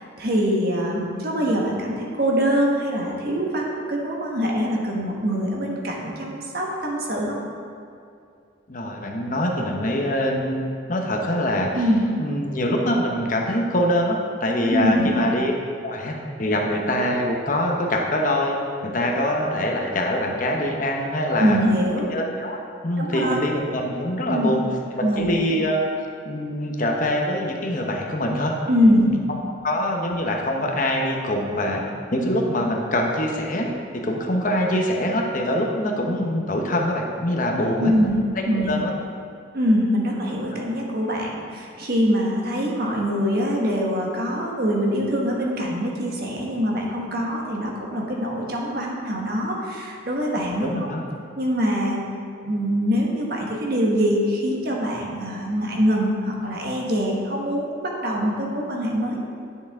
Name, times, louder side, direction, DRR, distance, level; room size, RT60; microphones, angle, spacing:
voice 1, 0.0-7.4 11.7-12.1 14.7-15.1 21.4-22.1 23.0-23.4 24.3-24.5 25.0-25.3 28.7-29.1 37.8-38.2 38.5-38.8 39.5-50.9 51.4-52.0 52.4-59.2, equal, 50° right, -1 dB, 1.3 m, -23 dB
voice 2, 8.7-11.7 12.2-15.5 15.8-18.6 18.8-21.6 22.1-24.6 24.9-25.9 26.2-28.5 28.9-29.2 29.6-31.8 32.1-33.7 33.9-37.9 38.5-38.9 50.6-51.0, left 1 dB, 40° left, 1 dB, 0.9 m, -24 dB
10.5 x 6.5 x 3.6 m, 2.4 s
head